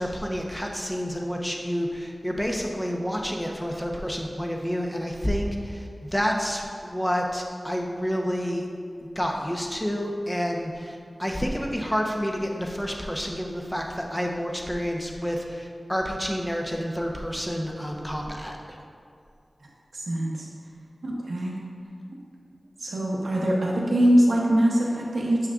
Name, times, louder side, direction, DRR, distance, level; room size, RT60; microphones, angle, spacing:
voice 1, 0.0-8.7 9.1-18.8, equal, 10° left, 1 dB, 0.9 m, -29 dB
voice 2, 19.9-20.3 21.0-21.5 22.8-25.4, equal, 85° right, -3 dB, 0.9 m, -22 dB
7.2 x 6.3 x 2.4 m, 2.4 s
cardioid pair, 45°, 0 cm